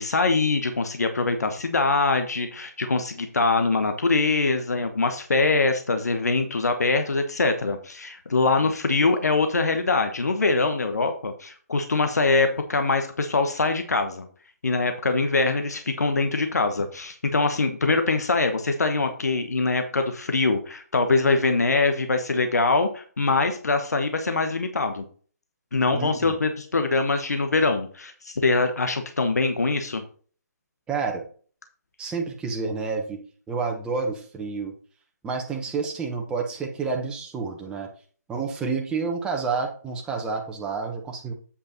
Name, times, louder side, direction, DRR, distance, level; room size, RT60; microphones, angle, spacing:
voice 1, 0.0-14.3 14.6-25.0 25.7-30.0, left 3 dB, 70° left, 7 dB, 1.2 m, -23 dB
voice 2, 25.9-26.4 30.9-31.2 32.0-33.2 33.5-34.7 35.2-37.9 38.3-41.3, right 4 dB, 10° right, 1 dB, 1.2 m, -29 dB
8.5 x 5.2 x 4.3 m, 0.42 s
figure-of-eight pair, 140°, 9 cm